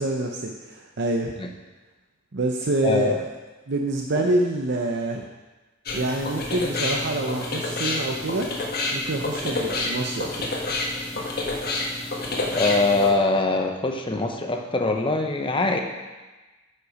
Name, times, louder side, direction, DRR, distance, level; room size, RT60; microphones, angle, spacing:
voice 1, 0.0-1.4 2.3-3.3 3.7-5.3 5.9-8.5 8.9-10.6, right 2 dB, 60° right, 1 dB, 0.7 m, -26 dB
voice 2, 2.8-3.2 4.1-4.3 12.5-15.8, left 3 dB, 25° left, 3 dB, 0.9 m, -23 dB
sound 1, 5.9-13.1, left 2 dB, 50° left, 1.5 m, -28 dB
10.5 x 5.6 x 5.0 m, 1.2 s
head